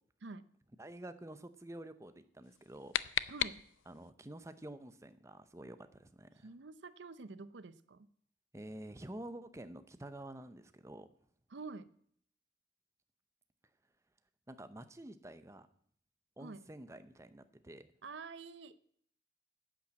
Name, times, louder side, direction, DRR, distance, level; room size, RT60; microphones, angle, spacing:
voice 1, 0.8-2.9 3.9-6.5 8.5-11.1 14.5-15.7 16.4-17.9, right 1 dB, 15° right, 11 dB, 0.7 m, -49 dB
sound 1, 2.4-4.1, left 11 dB, 90° left, 0.5 m, -37 dB
voice 2, 3.3-3.6 6.4-8.1 11.5-11.9 16.4-16.7 18.0-18.8, right 4 dB, 70° right, 15 dB, 0.6 m, -48 dB
10.0 x 8.8 x 7.5 m, 0.64 s
head